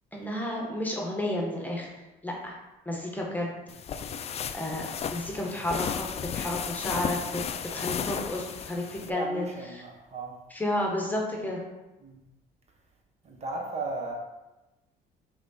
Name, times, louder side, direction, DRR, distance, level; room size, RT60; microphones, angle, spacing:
voice 1, 0.1-1.9 2.2-2.5 2.9-3.5 4.5-6.1 6.3-7.4 7.7-9.5 9.7-9.8 10.5-11.6, left 1 dB, 10° left, -1 dB, 1.1 m, -31 dB
sound 1, 3.7-9.1, left 7 dB, 40° left, 0.4 m, -34 dB
voice 2, 9.1-10.3 12.0-12.2 13.2-14.1, right 3 dB, 40° right, 0 dB, 1.2 m, -36 dB
6.1 x 3.7 x 4.3 m, 1.0 s
cardioid pair, 110°, 17 cm